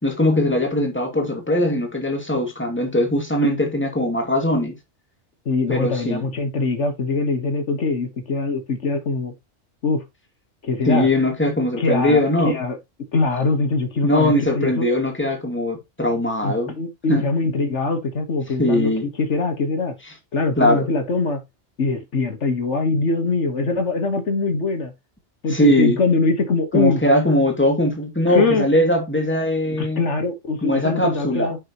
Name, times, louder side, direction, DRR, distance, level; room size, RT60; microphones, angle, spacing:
voice 1, 0.0-4.8 5.7-6.3 10.9-12.6 14.0-16.8 17.1-17.3 18.6-19.1 20.6-20.9 25.5-26.0 26.7-30.0 30.6-31.6, left 1 dB, 10° left, 2.4 m, -20 dB
voice 2, 5.5-9.3 9.8-10.0 10.6-11.1 11.8-12.8 13.1-14.9 16.4-18.9 19.2-20.0 20.3-21.4 21.8-24.9 25.4-27.0 28.3-28.7 29.8-31.6, left 3 dB, 70° left, 1.7 m, -22 dB
10.5 x 6.0 x 3.0 m
omnidirectional pair, 1.3 m